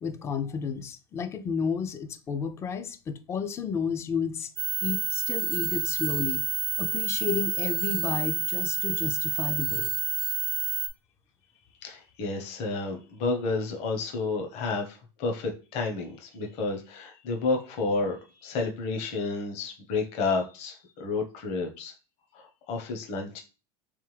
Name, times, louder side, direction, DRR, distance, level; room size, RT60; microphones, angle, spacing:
voice 1, 0.0-4.5 4.8-6.4 6.8-9.9, left 6 dB, 20° left, 0.4 m, -31 dB
sound 1, 4.6-10.9, right 7 dB, 45° right, 0.5 m, -29 dB
voice 2, 11.8-18.2 18.4-21.9 22.3-23.4, left 3 dB, 45° left, 1.0 m, -31 dB
3.4 x 3.4 x 3.2 m
supercardioid pair, 150°, 15 cm